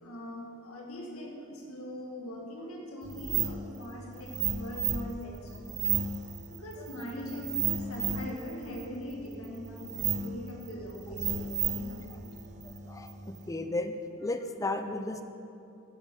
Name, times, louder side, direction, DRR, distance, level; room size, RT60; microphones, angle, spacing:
voice 1, 0.0-5.9 6.5-12.2, equal, 75° left, -1 dB, 1.8 m, -41 dB
sound 1, 3.0-13.5, right 7 dB, 35° right, 0.5 m, -34 dB
voice 2, 12.9-14.0 14.2-15.2, left 2 dB, 15° left, 7 dB, 0.4 m, -34 dB
10.0 x 8.8 x 5.4 m, 2.8 s
head